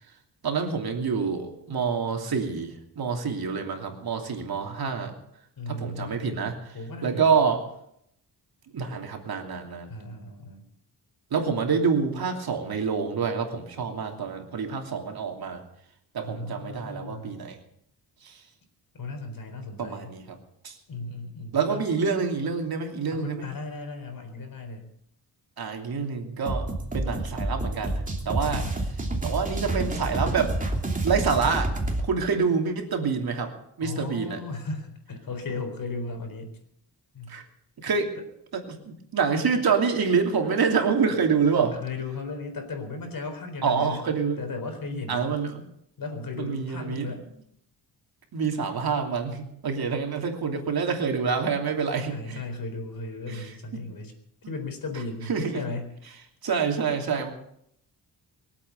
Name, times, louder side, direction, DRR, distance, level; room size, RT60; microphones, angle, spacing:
voice 1, 0.4-5.1 5.7-7.6 8.7-9.9 11.3-15.6 16.1-17.6 18.2-18.4 19.8-20.4 20.6-20.8 21.5-23.5 25.6-26.7 26.9-28.6 29.2-30.5 31.0-31.7 32.0-33.5 33.8-34.4 37.3-37.4 37.8-38.2 38.5-41.8 43.6-44.4 45.1-45.6 46.4-47.1 48.3-52.4 53.3-53.8 55.3-55.6 56.4-57.3, right 5 dB, 60° right, 3 dB, 2.9 m, -27 dB
voice 2, 5.6-6.4 6.7-7.3 9.9-10.6 16.2-17.4 18.9-20.2 20.9-21.8 23.1-24.9 28.4-28.8 33.8-36.6 37.1-37.4 41.7-44.0 44.4-45.3 46.0-47.2 52.1-54.1 54.5-55.9, left 3 dB, 55° left, 6 dB, 4.2 m, -36 dB
sound 1, 26.4-32.1, right 2 dB, 20° right, 2.9 m, -29 dB
23.0 x 8.4 x 7.0 m, 0.75 s
cardioid pair, 100°, 41 cm